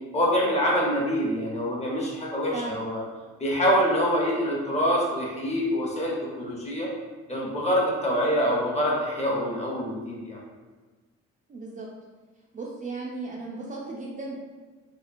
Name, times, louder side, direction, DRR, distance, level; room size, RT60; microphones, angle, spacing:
voice 1, 0.1-3.0 3.4-6.9 7.3-10.4, equal, 20° left, -4 dB, 0.8 m, -25 dB
voice 2, 2.5-2.8 11.5-11.9 12.5-14.3, right 3 dB, 25° right, -4 dB, 0.3 m, -36 dB
2.9 x 2.3 x 2.4 m, 1.3 s
cardioid pair, 90°, 30 cm